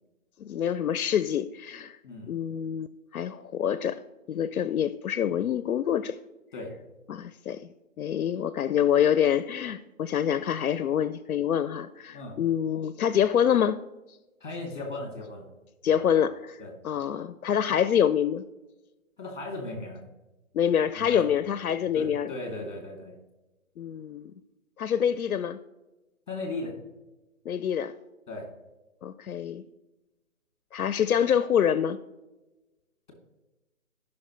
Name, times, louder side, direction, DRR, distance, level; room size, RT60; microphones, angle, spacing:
voice 1, 0.4-2.0 2.3-4.0 4.3-6.2 7.1-7.6 8.0-13.8 15.8-18.4 20.5-22.3 23.8-24.3 24.8-25.6 27.5-27.9 29.0-29.6 30.7-32.0, left 9 dB, 85° left, 0.6 m, -26 dB
voice 2, 14.4-15.5 15.9-16.0 16.6-16.7 19.2-20.0 21.0-21.6 21.9-23.1 26.3-26.7 28.3-28.5, left 2 dB, 35° left, 2.7 m, -37 dB
15.0 x 6.0 x 3.2 m
hypercardioid pair, 170°, 42 cm